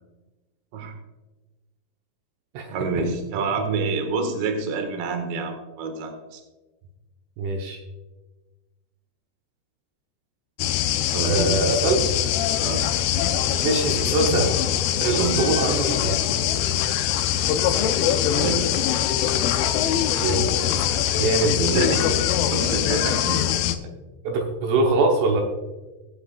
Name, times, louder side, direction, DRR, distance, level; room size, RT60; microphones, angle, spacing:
voice 1, 2.7-6.4 11.1-11.7 12.6-12.8 15.2-15.4 18.3-18.6 21.3-22.0 22.5-23.5, right 4 dB, 60° right, 4 dB, 3.0 m, -27 dB
voice 2, 7.4-7.8 11.2-12.1 13.6-14.6 15.0-16.2 20.2-20.5 21.2-21.5 24.2-25.4, right 2 dB, 75° right, 1 dB, 3.5 m, -23 dB
sound 1, 10.6-23.8, left 10 dB, 80° left, 3.1 m, -23 dB
23.0 x 7.9 x 2.4 m, 1.1 s
omnidirectional pair, 6.0 m